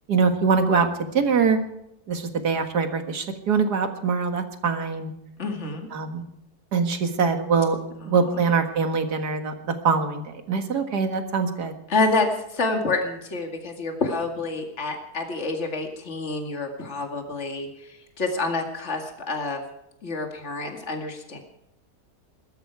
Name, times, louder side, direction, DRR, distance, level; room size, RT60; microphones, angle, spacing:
voice 1, 0.1-1.6 2.1-5.1 5.9-6.2 6.7-7.8 8.1-11.7, right 5 dB, 85° right, 6 dB, 2.2 m, -23 dB
voice 2, 5.4-5.9 8.0-8.5 11.9-19.6 20.0-21.4, left 3 dB, 45° left, 3 dB, 2.5 m, -28 dB
20.5 x 13.5 x 4.7 m, 0.80 s
omnidirectional pair, 1.7 m